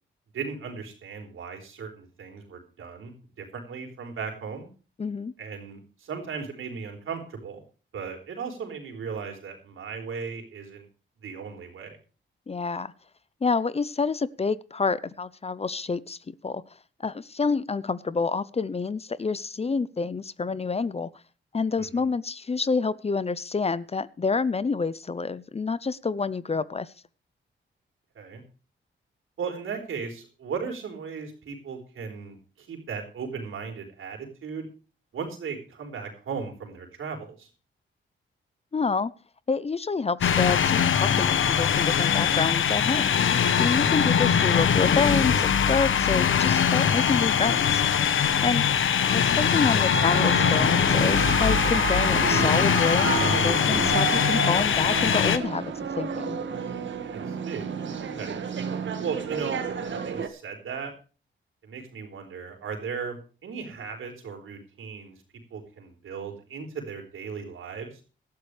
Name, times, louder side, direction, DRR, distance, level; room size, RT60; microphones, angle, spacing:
voice 1, 0.3-4.7 5.4-7.6 7.9-10.9 11.2-12.0 21.8-22.0 28.1-28.4 29.4-34.7 35.1-37.5 48.7-48.8 57.1-57.7 58.0-58.4 59.0-60.9 61.6-63.2 63.4-65.2 65.5-67.9, right 5 dB, 80° right, 3 dB, 4.4 m, -37 dB
voice 2, 5.0-5.3 12.5-12.9 13.4-16.2 16.4-16.6 17.0-21.1 21.5-26.9 38.7-39.1 39.5-43.1 43.6-47.8 48.4-48.6 49.1-56.4, left 4 dB, 30° left, 18 dB, 0.6 m, -28 dB
sound 1, 40.2-55.4, left 8 dB, 75° left, 1.1 m, -22 dB
sound 2, 49.9-60.3, right 7 dB, 65° right, 1.8 m, -31 dB
18.5 x 12.5 x 3.3 m, 0.35 s
cardioid pair, 90°, 21 cm